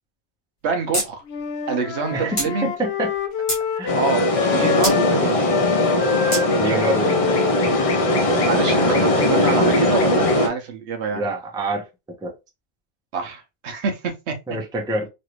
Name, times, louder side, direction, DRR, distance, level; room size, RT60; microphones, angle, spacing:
voice 1, 0.6-1.2 1.7-2.7 3.9-4.3 4.5-5.5 8.4-11.2 13.1-14.3, right 5 dB, 70° right, 1.0 m, -26 dB
sound 1, 0.9-1.1 1.4-1.5 2.4-2.5 3.1-3.7 4.8-5.0 6.3-6.4, equal, 25° left, 1.3 m, -24 dB
Wind instrument woodwind instrument, 1.3-5.2 5.5-9.7, left 7 dB, 70° left, 0.8 m, -27 dB
voice 2, 2.1-3.1 3.7-4.0 6.6-7.3 11.1-11.9 12.2-12.3 14.5-15.1, right 1 dB, 5° right, 0.5 m, -26 dB
sound 2, 3.9-10.5, left 1 dB, 45° left, 0.5 m, -20 dB
3.2 x 2.6 x 3.0 m
omnidirectional pair, 1.2 m